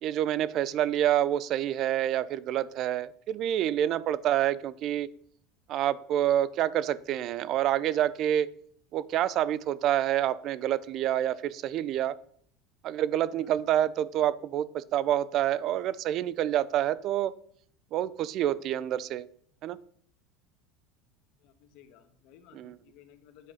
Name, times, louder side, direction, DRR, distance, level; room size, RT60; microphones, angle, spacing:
voice 1, 0.0-5.1 5.7-8.5 8.9-12.2 12.8-17.3 17.9-19.3 19.6-19.8 22.5-22.7, right 11 dB, 50° right, 19 dB, 0.4 m, -27 dB
voice 2, 21.4-23.5, left 10 dB, 65° left, 8 dB, 1.2 m, -57 dB
8.2 x 4.8 x 5.5 m, 0.62 s
supercardioid pair, 105°, 0 cm